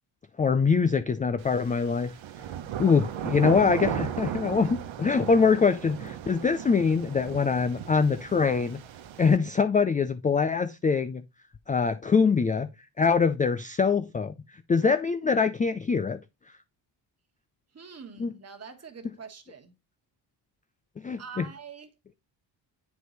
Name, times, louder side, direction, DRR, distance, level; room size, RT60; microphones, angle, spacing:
voice 1, 0.4-2.1 2.8-8.8 9.2-11.2 11.7-12.7 13.0-14.4 14.7-16.2 18.2-18.3 21.0-21.5, left 5 dB, 20° left, 0.3 m, -24 dB
sound 1, 1.4-9.4, right 10 dB, 85° right, 1.1 m, -36 dB
voice 2, 17.7-19.7 21.2-21.9, right 6 dB, 35° right, 1.4 m, -44 dB
8.3 x 4.7 x 4.0 m
cardioid pair, 130°, 45 cm